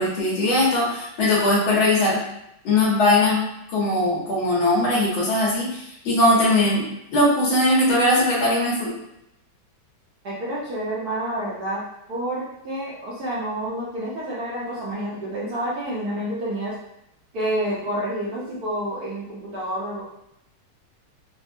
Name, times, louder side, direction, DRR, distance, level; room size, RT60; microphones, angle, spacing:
voice 1, 0.0-2.2 2.6-3.4 3.7-6.8 7.1-8.9, left 1 dB, 75° left, -6 dB, 2.0 m, -20 dB
voice 2, 10.2-11.8 12.1-16.7 17.3-20.0, right 1 dB, 60° right, -6 dB, 1.1 m, -29 dB
4.9 x 2.1 x 2.6 m, 0.80 s
omnidirectional pair, 2.2 m